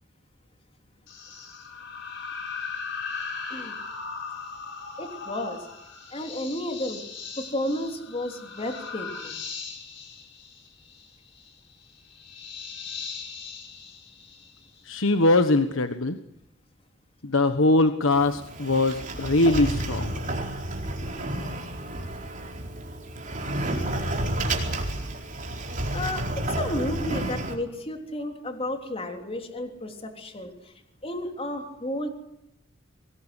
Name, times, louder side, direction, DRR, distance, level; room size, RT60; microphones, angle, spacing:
sound 1, 1.1-14.9, left 5 dB, 65° left, 7.6 m, -38 dB
voice 1, 5.0-5.7 6.1-7.0 7.4-9.4 25.9-26.3 26.6-30.7 31.0-32.1, left 1 dB, 30° left, 4 dB, 3.5 m, -32 dB
voice 2, 14.8-16.2 17.2-20.1, left 2 dB, 80° left, 8 dB, 1.3 m, -22 dB
Sliding door, 18.1-27.5, right 1 dB, 40° right, 4.5 m, -31 dB
24.5 x 19.5 x 8.3 m, 0.82 s
head